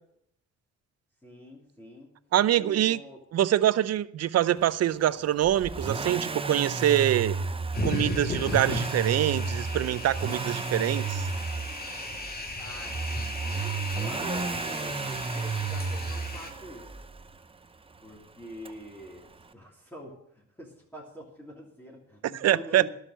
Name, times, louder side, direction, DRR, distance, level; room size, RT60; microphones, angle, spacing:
voice 1, 1.2-2.1 2.5-3.2 12.6-16.9 18.0-22.9, equal, 5° left, -5 dB, 3.2 m, -45 dB
voice 2, 2.3-3.0 3.3-7.4 7.8-11.2 22.2-22.9, right 12 dB, 55° right, 19 dB, 0.6 m, -25 dB
Accelerating revving vroom, 5.4-17.3 18.6-18.7, right 4 dB, 20° right, 0.7 m, -33 dB
sound 1, 7.7-16.5, left 2 dB, 30° left, 2.0 m, -36 dB
11.5 x 6.5 x 9.0 m, 0.75 s
cardioid pair, 90°, 30 cm